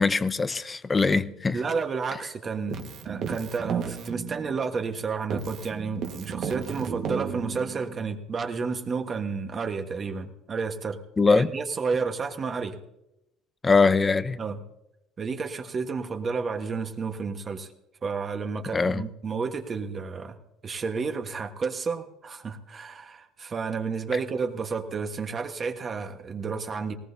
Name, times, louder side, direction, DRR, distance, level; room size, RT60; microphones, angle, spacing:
voice 1, 0.0-1.6 11.2-11.5 13.6-14.4 18.7-19.1, left 4 dB, 20° left, 14 dB, 0.7 m, -22 dB
voice 2, 1.5-11.0 11.3-12.8 14.4-14.6 15.2-17.7 18.0-20.4 20.6-26.9, right 5 dB, 35° right, 5 dB, 1.4 m, -31 dB
Keyboard (musical), 2.7-5.0 5.3-8.1, right 7 dB, 60° right, 1.6 m, -33 dB
19.0 x 18.0 x 2.8 m, 0.86 s
supercardioid pair, 105°, 0 cm